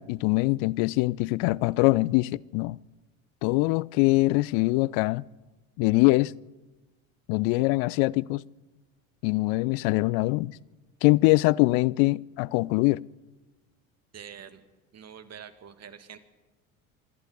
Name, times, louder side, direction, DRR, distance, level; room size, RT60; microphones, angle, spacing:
voice 1, 0.0-2.8 3.4-5.2 5.8-6.3 7.3-8.4 9.2-10.5 11.0-13.0, left 22 dB, 60° left, 0.6 m, -23 dB
voice 2, 14.1-14.6 14.9-16.2, right 8 dB, 40° right, 2.1 m, -45 dB
26.0 x 11.5 x 9.5 m
hypercardioid pair, 65°, 41 cm